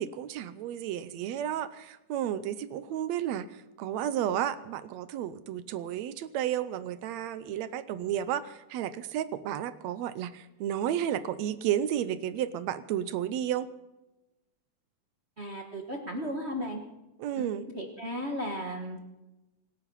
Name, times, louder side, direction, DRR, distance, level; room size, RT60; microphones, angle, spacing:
voice 1, 0.0-13.7 17.2-17.7, right 10 dB, 75° right, 14 dB, 1.7 m, -32 dB
voice 2, 15.4-16.8 17.4-19.1, equal, 55° right, 2 dB, 0.7 m, -35 dB
25.5 x 9.9 x 5.6 m, 1.0 s
omnidirectional pair, 3.7 m